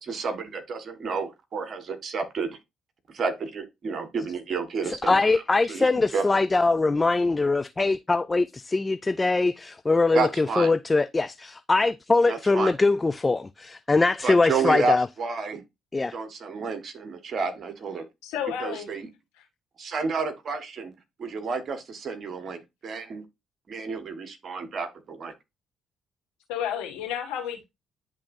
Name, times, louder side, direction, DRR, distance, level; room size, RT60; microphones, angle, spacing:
voice 1, 0.0-2.6 3.1-5.4 5.7-6.3 10.1-10.7 12.3-12.7 14.2-15.6 16.1-18.1 18.6-19.1 19.8-20.9 21.2-23.2 23.7-25.3, right 4 dB, 50° right, 1.5 m, -30 dB
voice 2, 4.9-15.1 15.9-16.1, left 3 dB, 25° left, 0.3 m, -22 dB
voice 3, 18.2-18.9 19.4-19.5 26.5-27.6, left 9 dB, 80° left, 1.8 m, -31 dB
10.5 x 3.6 x 2.6 m
hypercardioid pair, 50°, 0 cm